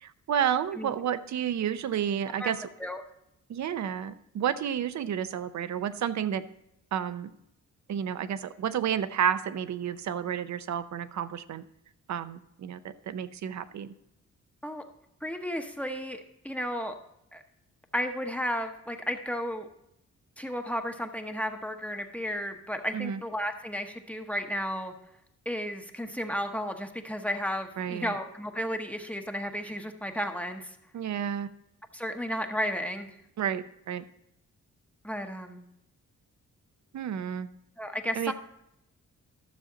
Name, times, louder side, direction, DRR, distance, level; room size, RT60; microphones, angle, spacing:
voice 1, 0.0-2.7 3.5-6.4 6.9-7.3 7.9-11.6 12.1-13.9 22.9-23.2 27.8-28.1 30.9-31.5 33.4-34.0 36.9-37.5 38.2-38.3, right 9 dB, 70° right, 13 dB, 0.7 m, -31 dB
voice 2, 15.2-16.9 17.3-17.4 17.9-19.7 20.4-24.9 25.5-30.8 31.9-33.1 35.0-35.6 37.8-38.3, equal, 5° left, 4 dB, 0.9 m, -33 dB
12.5 x 7.1 x 3.9 m, 0.80 s
wide cardioid pair, 130°, 30 cm